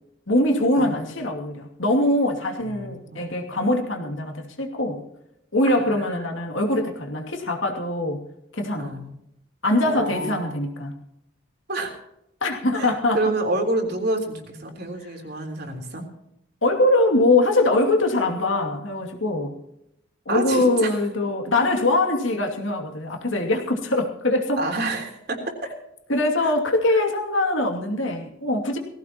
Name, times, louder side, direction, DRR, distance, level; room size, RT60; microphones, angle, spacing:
voice 1, 0.3-5.0 5.5-8.2 8.5-8.9 9.6-10.9 12.4-13.2 16.6-19.5 20.3-24.6 26.1-28.8, left 2 dB, 75° left, 2 dB, 2.6 m, -22 dB
voice 2, 2.6-3.3 5.6-6.4 8.8-9.1 9.8-10.6 11.7-11.9 12.7-16.0 20.3-21.0 24.6-25.5 26.4-26.5, right 2 dB, 50° right, 2 dB, 3.5 m, -29 dB
19.0 x 16.0 x 3.0 m, 0.79 s
head